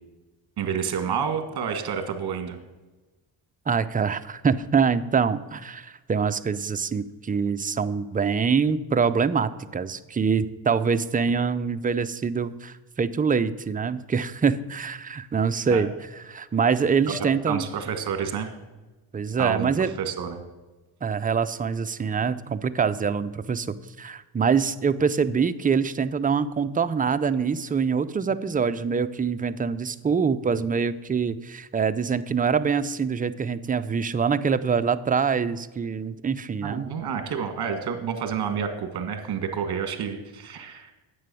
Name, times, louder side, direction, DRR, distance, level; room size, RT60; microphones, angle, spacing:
voice 1, 0.6-2.6 15.7-15.8 17.1-18.5 19.4-19.7 20.0-20.4 36.6-40.9, right 7 dB, 50° right, 7 dB, 1.8 m, -29 dB
voice 2, 3.7-15.9 16.3-17.7 19.1-19.9 21.0-36.9, right 6 dB, 20° right, 11 dB, 0.5 m, -25 dB
9.5 x 7.6 x 7.0 m, 1.2 s
cardioid pair, 90°, 49 cm